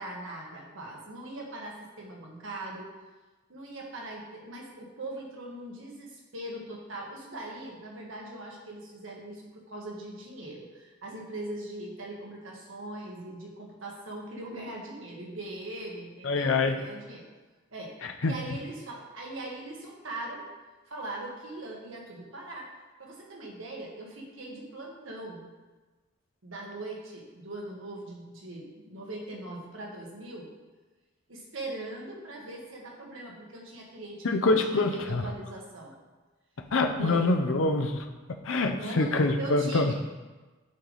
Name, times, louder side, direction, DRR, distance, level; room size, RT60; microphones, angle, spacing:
voice 1, 0.0-2.9 3.5-17.2 17.7-20.5 20.9-22.7 23.0-25.4 26.4-30.5 31.3-36.0 37.0-37.3 38.8-39.9, right 2 dB, 70° right, -2 dB, 1.4 m, -40 dB
voice 2, 16.2-16.7 18.2-18.3 34.2-35.3 36.7-38.1 38.4-39.9, left 3 dB, 70° left, 5 dB, 0.6 m, -25 dB
8.5 x 3.3 x 3.9 m, 1.2 s
head